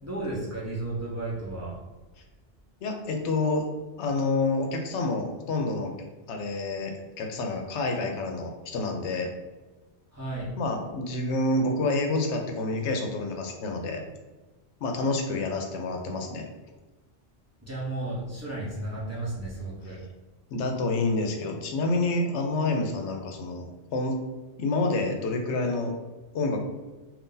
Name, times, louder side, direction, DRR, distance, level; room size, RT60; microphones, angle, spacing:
voice 1, 0.0-1.7 10.1-10.5 17.6-20.0, right 2 dB, 15° right, -7 dB, 0.7 m, -33 dB
voice 2, 2.8-3.6 4.0-5.9 6.3-9.3 10.6-14.0 14.8-16.5 20.5-24.2 24.6-25.9 26.3-26.6, left 2 dB, 85° left, 3 dB, 0.9 m, -28 dB
2.6 x 2.5 x 3.7 m, 1.2 s
omnidirectional pair, 1.1 m